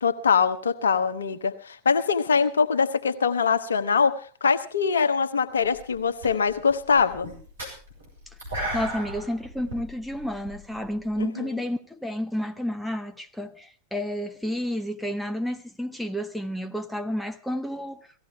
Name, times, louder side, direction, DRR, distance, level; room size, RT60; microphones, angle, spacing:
voice 1, 0.0-7.3 11.2-11.5, left 5 dB, 70° left, 1.1 m, -23 dB
sound 1, 5.6-5.9 6.2-11.2, equal, 75° right, 6.5 m, -36 dB
voice 2, 8.7-18.1, equal, 5° left, 1.1 m, -31 dB
17.5 x 15.0 x 4.8 m
figure-of-eight pair, 90°, 0 cm